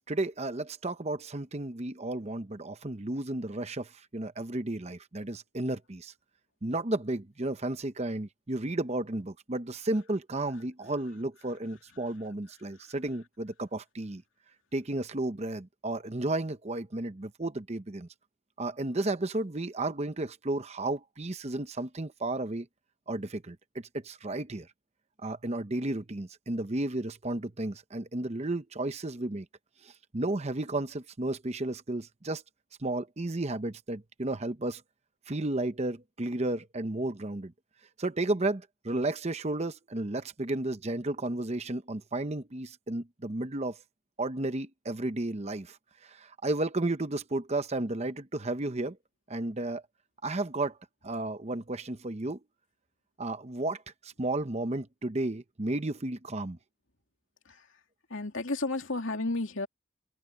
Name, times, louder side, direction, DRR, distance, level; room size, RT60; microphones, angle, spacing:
voice 1, 0.1-6.1 6.6-14.2 14.7-18.1 18.6-22.7 23.1-24.7 25.2-29.5 29.8-32.4 32.8-34.8 35.3-37.5 38.0-43.8 44.2-45.8 46.0-49.0 49.3-49.8 50.2-50.8 51.0-52.4 53.2-56.6, right 2 dB, 30° right, 0.8 m, -33 dB
voice 2, 57.4-57.8 58.1-59.7, left 2 dB, 65° left, 3.1 m, -33 dB
head